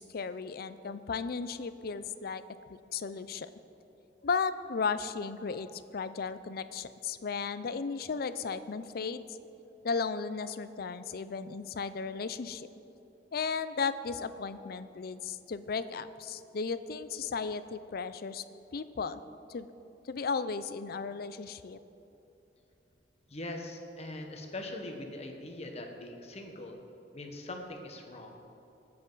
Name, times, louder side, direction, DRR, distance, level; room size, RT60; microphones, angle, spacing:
voice 1, 0.0-2.4 2.7-3.5 4.2-9.2 9.8-12.7 13.3-18.4 18.7-19.2 19.5-19.7 20.1-21.8, left 5 dB, 60° left, 13 dB, 0.5 m, -35 dB
voice 2, 23.3-26.8 27.1-28.4, left 1 dB, 40° left, 3 dB, 1.3 m, -42 dB
19.5 x 7.8 x 4.0 m, 2.9 s
head